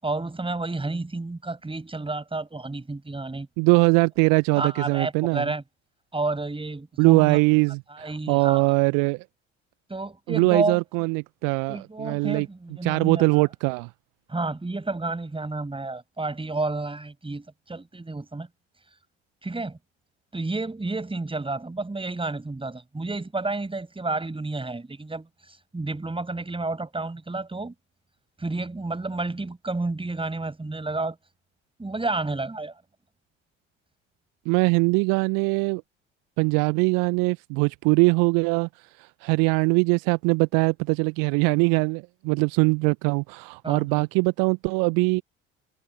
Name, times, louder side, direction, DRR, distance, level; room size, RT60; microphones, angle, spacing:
voice 1, 0.0-3.5 4.5-5.6 6.1-7.4 7.9-8.7 9.9-10.8 11.7-13.5 14.3-18.5 19.4-19.8 20.3-27.7 28.4-31.2 31.8-32.7 43.6-44.1, right 3 dB, 15° right, 7.2 m, -30 dB
voice 2, 3.6-5.5 7.0-9.2 10.3-12.5 12.8-13.9 34.4-35.8 36.4-38.7 39.0-45.2, right 32 dB, 60° right, 1.2 m, -22 dB
figure-of-eight pair, 60°, 38 cm